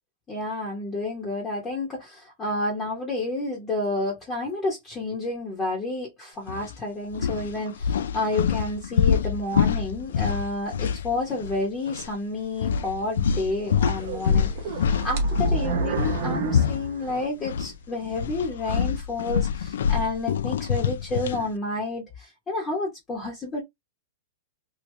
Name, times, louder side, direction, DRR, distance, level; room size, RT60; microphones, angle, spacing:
voice 1, 0.3-14.7 15.0-23.6, left 2 dB, 10° left, 1.0 m, -30 dB
sound 1, 6.5-6.7 7.1-11.6 11.9-12.1 12.6-17.7 18.0-21.5, left 7 dB, 90° left, 0.4 m, -26 dB
sound 2, 14.0-17.7 18.2-18.3 18.9-19.0, right 3 dB, 50° right, 1.1 m, -30 dB
3.0 x 2.7 x 3.2 m
supercardioid pair, 175°, 0 cm